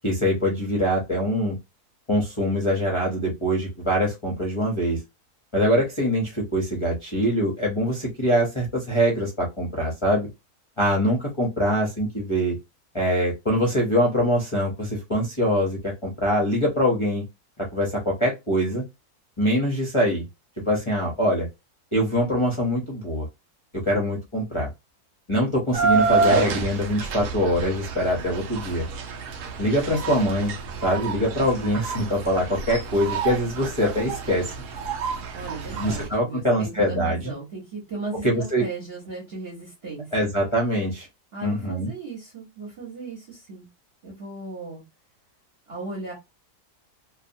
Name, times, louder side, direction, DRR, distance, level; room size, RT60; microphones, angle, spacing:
voice 1, 0.0-1.6 2.1-5.0 5.5-10.3 10.8-12.5 12.9-17.2 17.6-18.8 19.4-20.2 20.6-21.5 21.9-23.3 23.7-24.7 25.3-28.9 29.6-30.5 30.8-34.5 35.8-37.3 38.2-38.6 40.1-41.1 41.4-41.9, equal, 30° left, -3 dB, 0.5 m, -23 dB
sound 1, 25.7-36.1, right 4 dB, 70° right, 0.8 m, -28 dB
voice 2, 35.3-40.3 41.3-43.7 44.0-44.8 45.7-46.1, right 3 dB, 45° right, -3 dB, 1.1 m, -36 dB
2.7 x 2.3 x 2.6 m, 0.22 s
omnidirectional pair, 1.7 m